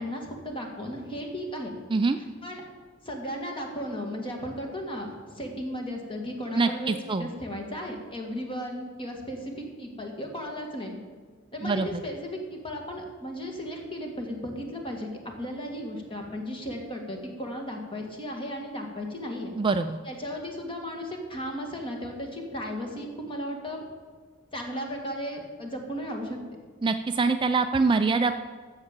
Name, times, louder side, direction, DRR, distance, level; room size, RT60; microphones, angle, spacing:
voice 1, 0.0-1.8 2.4-2.6 3.0-11.0 11.5-19.5 20.0-23.9 24.5-26.6, equal, 25° left, 2 dB, 2.0 m, -35 dB
voice 2, 6.6-7.3 11.6-12.0 19.6-20.0 26.8-28.3, right 4 dB, 25° right, 8 dB, 0.4 m, -24 dB
12.5 x 7.5 x 7.4 m, 1.5 s
head